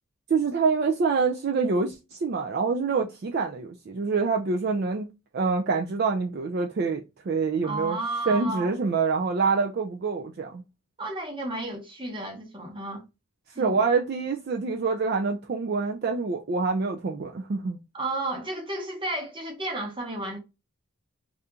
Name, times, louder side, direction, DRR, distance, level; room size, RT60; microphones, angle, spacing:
voice 1, 0.3-5.1 5.3-8.0 8.3-10.6 13.6-17.8, right 4 dB, 45° right, 0.3 m, -26 dB
voice 2, 7.6-8.7 11.0-13.0 13.5-13.8 17.9-20.4, right 2 dB, 20° right, 0.9 m, -32 dB
2.8 x 2.4 x 3.4 m
head